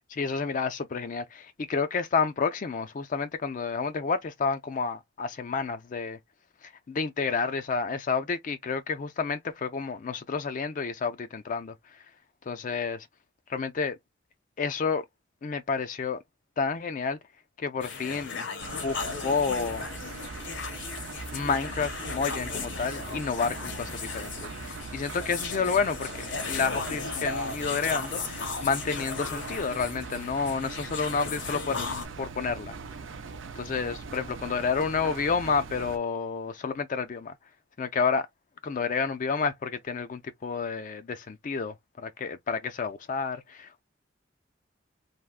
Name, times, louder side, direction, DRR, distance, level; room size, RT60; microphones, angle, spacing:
voice 1, 0.1-6.2 6.6-12.0 12.5-13.1 13.5-14.0 14.6-15.0 15.4-16.2 16.6-17.2 17.6-18.5 18.8-19.9 21.3-32.8 33.6-37.3 37.8-38.3 38.6-43.8, left 5 dB, 45° left, 0.4 m, -30 dB
sound 1, 17.8-32.1, left 4 dB, 70° left, 0.9 m, -36 dB
Engine, 18.6-36.0, right 4 dB, 80° right, 0.5 m, -41 dB
3.4 x 2.1 x 2.4 m
head